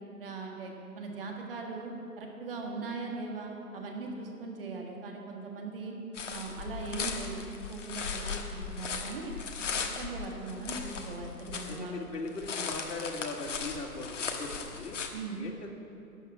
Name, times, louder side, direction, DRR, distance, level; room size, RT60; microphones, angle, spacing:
voice 1, 0.2-5.9 6.3-9.3 10.0-12.0 15.1-15.4, right 3 dB, 35° right, 1 dB, 1.6 m, -40 dB
sound 1, 6.1-11.8 12.1-15.1, left 5 dB, 50° left, 1.3 m, -37 dB
voice 2, 11.7-15.0 15.3-15.7, left 3 dB, 85° left, -1 dB, 2.2 m, -39 dB
12.5 x 7.1 x 8.8 m, 2.7 s
hypercardioid pair, 160°, 48 cm